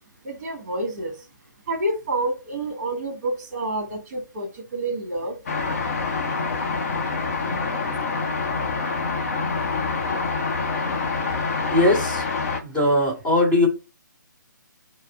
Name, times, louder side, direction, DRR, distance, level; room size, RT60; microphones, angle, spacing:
voice 1, 0.2-1.1 1.7-5.3, right 2 dB, 30° right, 2 dB, 1.8 m, -28 dB
sound 1, 5.5-12.6, left 4 dB, 45° left, 0.9 m, -26 dB
voice 2, 11.7-12.2 12.6-13.7, left 1 dB, 10° left, -4 dB, 1.5 m, -19 dB
4.6 x 2.2 x 4.6 m, 0.29 s
figure-of-eight pair, 135°, 11 cm